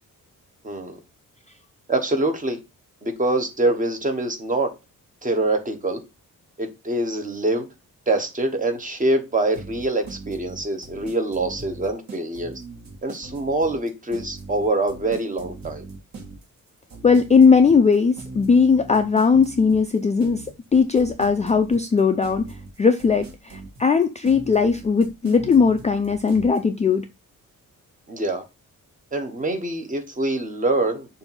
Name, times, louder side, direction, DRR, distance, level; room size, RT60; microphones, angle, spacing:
voice 1, 0.6-1.0 1.9-2.6 3.0-4.7 5.2-6.0 6.6-7.7 8.1-12.5 13.0-15.8 28.1-28.4 29.1-31.2, right 2 dB, 25° right, 1.0 m, -24 dB
sound 1, 9.5-26.6, right 3 dB, 50° right, 1.6 m, -40 dB
voice 2, 17.0-20.5 20.7-22.5 22.8-27.1, left 5 dB, 20° left, 0.3 m, -18 dB
6.7 x 2.7 x 5.6 m
wide cardioid pair, 165°, 34 cm